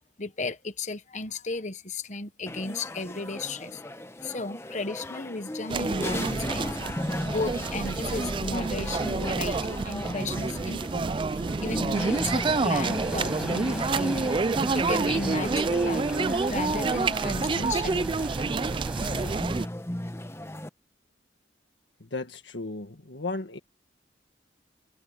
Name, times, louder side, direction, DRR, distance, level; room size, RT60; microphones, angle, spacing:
voice 1, 0.2-3.8 4.2-6.8 7.2-11.0 11.6-14.3 14.7-18.1, left 3 dB, 40° left, 1.2 m, -34 dB
sound 1, 2.5-20.7, left 1 dB, 15° left, 0.9 m, -37 dB
sound 2, 5.7-19.7, right 4 dB, 25° right, 0.3 m, -28 dB
sound 3, 11.9-19.4, right 1 dB, 5° right, 6.4 m, -40 dB
voice 2, 17.5-18.5 19.2-19.4 22.0-23.6, left 3 dB, 75° left, 1.7 m, -37 dB
head